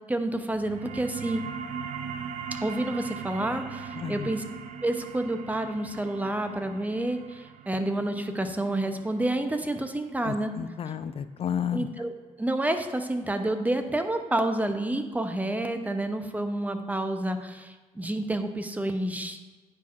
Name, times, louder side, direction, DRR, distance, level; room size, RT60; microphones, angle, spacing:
voice 1, 0.1-1.4 2.5-4.4 4.8-10.5 11.7-19.4, right 1 dB, 10° right, 7 dB, 0.6 m, -29 dB
sound 1, 0.5-11.6, right 6 dB, 70° right, 0.4 m, -40 dB
voice 2, 3.9-4.3 10.2-11.9, left 8 dB, 50° left, 12 dB, 0.4 m, -32 dB
9.5 x 4.3 x 2.4 m, 1.3 s
cardioid pair, 75°, 13 cm